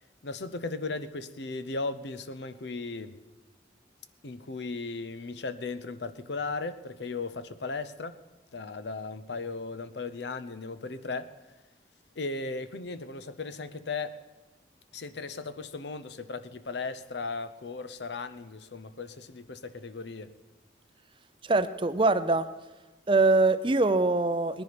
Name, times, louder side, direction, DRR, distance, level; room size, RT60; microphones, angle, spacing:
voice 1, 0.2-3.2 4.2-8.2 8.5-11.3 12.2-14.2 14.9-20.3, left 3 dB, 70° left, 12 dB, 0.7 m, -36 dB
voice 2, 21.4-22.5 23.1-24.6, right 3 dB, 25° right, 12 dB, 0.5 m, -23 dB
19.0 x 10.5 x 6.0 m, 1.2 s
head